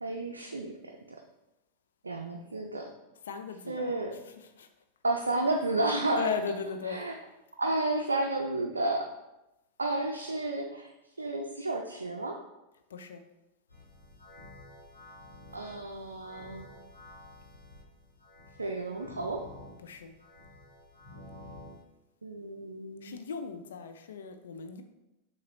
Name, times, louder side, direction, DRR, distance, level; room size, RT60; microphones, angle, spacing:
voice 1, 0.0-1.2 2.0-2.9 3.7-4.2 5.0-6.3 6.9-7.1 7.6-9.1 9.8-12.4 15.5-16.7 18.6-19.5 22.2-23.2, right 2 dB, 80° right, 1 dB, 0.4 m, -32 dB
voice 2, 3.3-3.9 4.6-4.7 6.2-7.0 12.9-13.2 19.8-20.1 23.0-24.8, left 6 dB, 65° left, 7 dB, 0.4 m, -36 dB
sound 1, 13.7-21.8, left 1 dB, 80° left, 1.2 m, -51 dB
6.6 x 2.5 x 3.0 m, 0.94 s
figure-of-eight pair, 90°, 0 cm